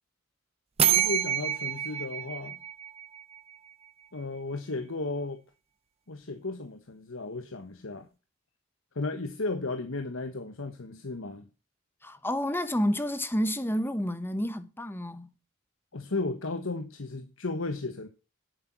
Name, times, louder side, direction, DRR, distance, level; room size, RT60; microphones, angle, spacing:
sound 1, 0.8-3.5, right 10 dB, 30° right, 0.6 m, -28 dB
voice 1, 0.9-2.6 4.1-5.4 6.1-8.1 8.9-11.5 15.9-18.1, left 3 dB, 70° left, 1.3 m, -34 dB
voice 2, 12.0-15.3, equal, 10° left, 1.0 m, -29 dB
11.0 x 8.4 x 6.1 m
head